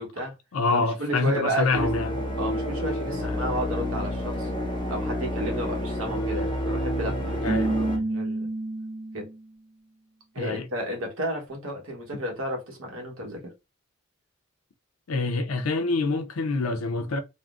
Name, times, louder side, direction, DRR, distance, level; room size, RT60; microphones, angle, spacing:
voice 1, 0.0-0.3 0.7-1.9 2.4-4.5 4.9-8.5 9.1-9.3 10.3-13.4, equal, 70° right, 1.1 m, -32 dB
voice 2, 0.5-2.2 3.2-3.4 7.4-7.7 10.4-10.7 15.1-17.2, left 3 dB, 75° left, 0.5 m, -26 dB
sound 1, 1.7-8.0, equal, 20° left, 0.6 m, -29 dB
Keyboard (musical), 7.5-9.4, right 2 dB, 45° right, 0.5 m, -29 dB
3.5 x 2.1 x 2.4 m
head